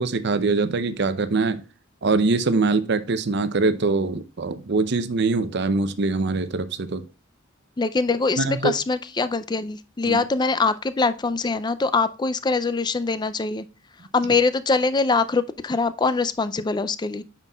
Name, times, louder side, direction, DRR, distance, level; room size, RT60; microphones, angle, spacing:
voice 1, 0.0-1.6 2.0-7.0 8.4-8.8 10.1-10.2, right 3 dB, 55° right, 0.6 m, -23 dB
voice 2, 7.8-13.6 14.1-17.2, left 4 dB, 20° left, 0.4 m, -23 dB
9.1 x 5.9 x 2.3 m
head